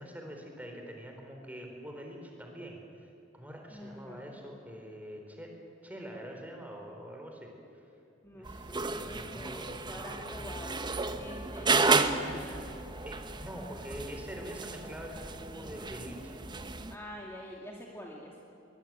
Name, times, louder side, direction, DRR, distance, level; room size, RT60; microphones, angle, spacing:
voice 1, 0.0-2.8 3.3-5.6 5.8-7.5 8.3-10.4 13.0-16.4, equal, 10° right, 2 dB, 4.2 m, -45 dB
voice 2, 3.7-4.3 8.2-10.9 11.2-12.7 16.9-18.4, equal, 15° left, -2 dB, 2.3 m, -45 dB
sound 1, 8.4-17.0, right 3 dB, 25° right, 1.0 m, -33 dB
23.0 x 20.5 x 9.0 m, 2.7 s
head